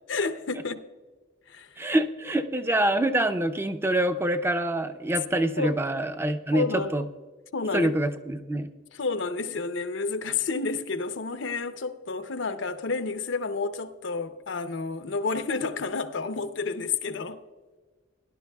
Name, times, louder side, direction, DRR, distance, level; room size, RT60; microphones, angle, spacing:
voice 1, 0.1-0.8 1.5-1.9 5.6-5.8 6.5-6.9 7.5-7.9 8.9-17.4, left 4 dB, 80° left, 0.7 m, -30 dB
voice 2, 1.8-7.0 7.7-8.7, right 1 dB, 10° right, 0.5 m, -26 dB
17.5 x 11.0 x 2.3 m
head